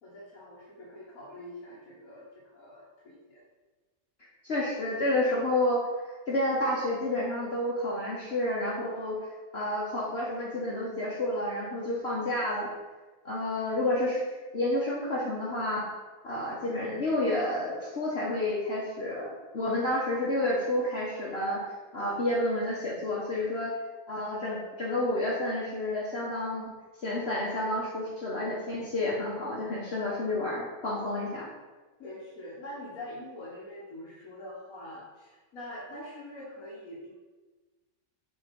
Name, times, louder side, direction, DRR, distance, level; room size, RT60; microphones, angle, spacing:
voice 1, 0.0-3.4 32.0-37.1, left 1 dB, 75° left, -6 dB, 1.8 m, -44 dB
voice 2, 4.4-9.2 9.5-12.7 13.2-14.2 14.5-15.9 16.2-21.6 21.9-23.7 24.1-26.7 27.0-31.5, left 1 dB, 50° left, -5 dB, 1.4 m, -30 dB
7.4 x 4.3 x 5.2 m, 1.3 s
omnidirectional pair, 1.5 m